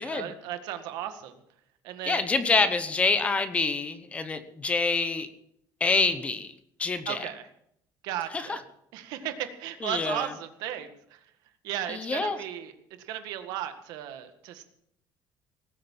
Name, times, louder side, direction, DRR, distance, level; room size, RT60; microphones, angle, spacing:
voice 1, 0.0-1.4 1.8-2.4 7.1-7.5 8.0-8.6 8.9-11.2 11.6-12.7 13.0-14.6, right 11 dB, 75° right, 8 dB, 1.8 m, -35 dB
voice 2, 2.1-5.3 5.8-6.5 6.8-7.2 8.5-8.6 9.8-10.2 11.9-12.4, left 4 dB, 20° left, 11 dB, 1.0 m, -26 dB
18.5 x 8.5 x 7.4 m, 0.73 s
cardioid pair, 170°, 7 cm